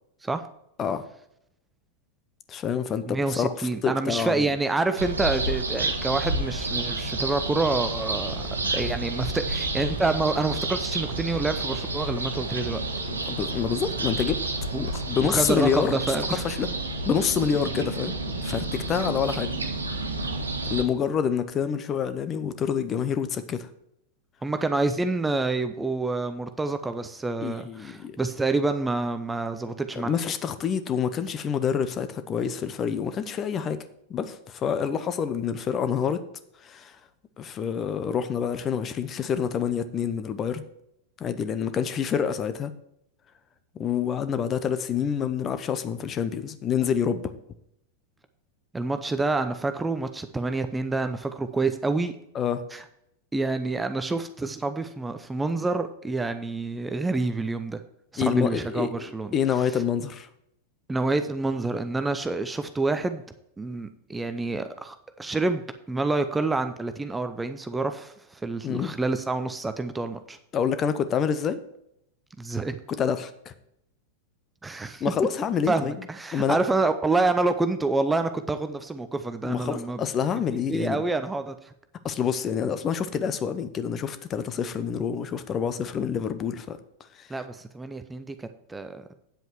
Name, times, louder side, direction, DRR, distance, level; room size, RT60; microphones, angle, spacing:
voice 1, 2.5-4.5 13.1-14.4 14.8-16.0 16.4-16.7 17.0-18.2 18.4-19.5 20.7-23.7 27.4-28.2 30.0-33.8 34.1-36.2 36.6-37.0 37.4-40.6 41.2-42.7 43.7-47.3 52.3-52.7 58.2-60.3 68.6-68.9 70.5-71.6 72.9-73.3 75.0-76.0 76.3-76.6 79.4-81.0 82.0-86.8 87.1-87.3, left 7 dB, 25° left, 12 dB, 0.8 m, -27 dB
voice 2, 3.1-8.5 8.7-12.8 14.7-14.9 15.2-16.4 24.4-30.1 48.7-52.1 52.7-52.8 53.3-57.8 58.1-59.3 60.9-63.2 63.6-65.6 65.9-68.1 68.4-70.4 72.4-72.8 74.6-75.0 75.7-80.0 80.7-81.6 87.3-89.1, right 3 dB, 10° right, 9 dB, 0.6 m, -27 dB
sound 1, 5.0-20.8, right 2 dB, 75° right, 1.3 m, -30 dB
9.2 x 7.9 x 4.7 m, 0.76 s
figure-of-eight pair, 90°, 0 cm